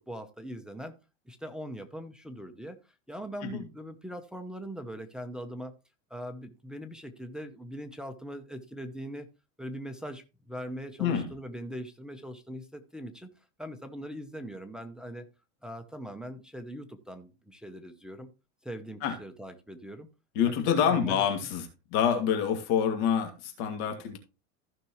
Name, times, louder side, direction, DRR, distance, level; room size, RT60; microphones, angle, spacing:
voice 1, 0.1-0.9 1.3-2.8 3.1-5.7 6.1-9.3 9.6-13.3 13.6-15.3 15.6-18.3 18.6-20.1 20.5-21.2, equal, ahead, 6 dB, 0.7 m, -41 dB
voice 2, 11.0-11.3 19.0-19.1 20.3-24.2, left 8 dB, 60° left, 5 dB, 2.4 m, -27 dB
15.0 x 6.0 x 3.0 m, 0.29 s
supercardioid pair, 145°, 38 cm